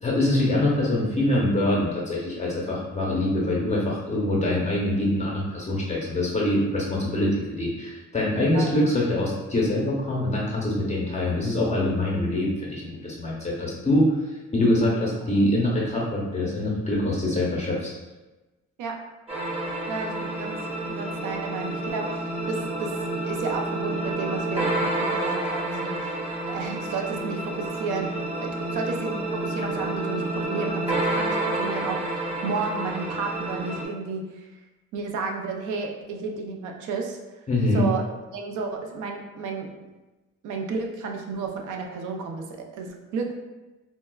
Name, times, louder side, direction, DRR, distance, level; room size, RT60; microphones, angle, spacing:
voice 1, 0.0-14.2 14.5-18.0 37.5-37.9, left 1 dB, 25° left, -4 dB, 0.7 m, -24 dB
voice 2, 8.4-8.7 14.9-15.1 18.8-19.0 19.9-22.9 23.2-26.2 26.5-28.1 28.4-34.5 34.9-37.2 37.7-38.0 38.3-39.7 40.4-43.3, right 4 dB, 80° right, 2 dB, 0.5 m, -32 dB
sound 1, 19.3-33.9, right 2 dB, 20° right, 0.8 m, -29 dB
3.9 x 2.3 x 2.2 m, 1.1 s
cardioid pair, 90°, 30 cm